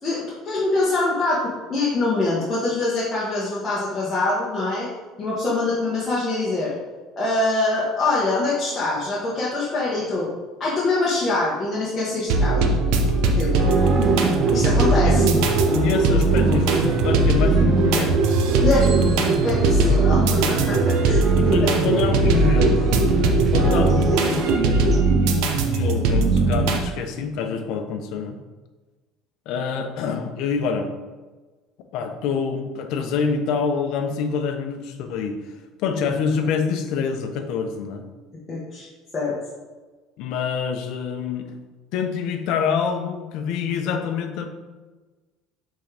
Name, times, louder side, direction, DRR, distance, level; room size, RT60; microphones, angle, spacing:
voice 1, 0.0-4.9 5.2-6.7 7.2-10.3 10.6-12.7 13.4-13.5 14.5-15.2 18.6-18.9 19.4-21.6 38.5-38.9 39.1-39.3, left 2 dB, 25° left, -8 dB, 1.3 m, -24 dB
sound 1, 12.3-26.8, right 3 dB, 75° right, 0.8 m, -20 dB
sound 2, 13.5-25.0, right 4 dB, 35° right, 0.7 m, -25 dB
voice 2, 13.8-14.3 15.0-15.4 15.7-18.2 21.4-22.8 23.5-24.5 25.7-28.4 29.5-30.9 31.9-35.5 35.8-38.0 40.2-41.5 41.9-44.5, left 6 dB, 65° left, 5 dB, 0.8 m, -26 dB
7.5 x 3.8 x 3.4 m, 1.3 s
cardioid pair, 135°, 0 cm